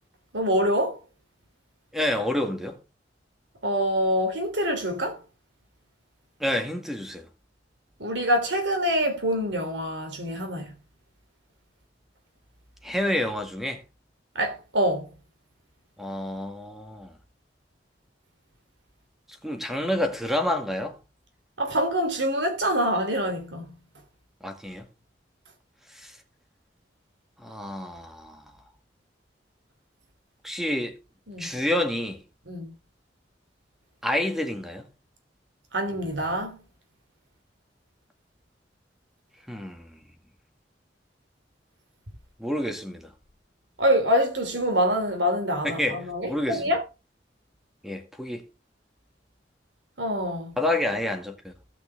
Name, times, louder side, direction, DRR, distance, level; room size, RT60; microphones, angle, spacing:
voice 1, 0.3-1.0 3.6-5.2 8.0-10.7 14.3-15.1 21.6-23.7 31.3-31.5 32.5-32.7 35.7-36.6 43.8-46.8 50.0-50.6, equal, 80° right, 3.0 m, -25 dB
voice 2, 1.9-2.8 6.4-7.3 12.8-13.8 16.0-17.1 19.4-21.0 24.4-24.9 26.0-26.1 27.4-28.4 30.4-31.0 31.4-32.2 34.0-34.8 39.5-40.0 42.4-43.1 45.6-46.7 47.8-48.5 50.6-51.5, left 1 dB, ahead, 1.9 m, -28 dB
17.0 x 5.9 x 3.4 m
head